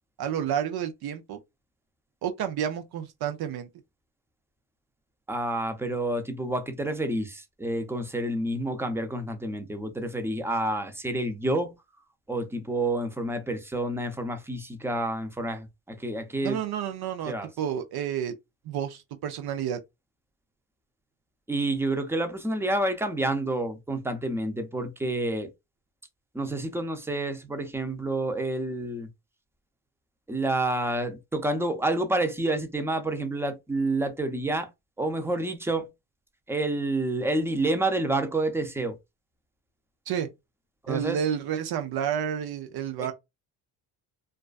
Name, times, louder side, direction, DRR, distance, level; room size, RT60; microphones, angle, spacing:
voice 1, 0.2-1.4 2.2-3.7 16.4-18.3 18.6-19.8 40.1-40.3 40.9-43.1, right 9 dB, 55° right, 0.5 m, -30 dB
voice 2, 5.3-11.7 12.3-16.6 17.3-17.5 21.5-25.5 26.3-29.1 30.3-34.7 35.0-35.9 36.5-39.0 40.8-41.2 43.0-43.1, right 2 dB, 5° right, 0.5 m, -29 dB
2.4 x 2.2 x 2.3 m
supercardioid pair, 65°, 45 cm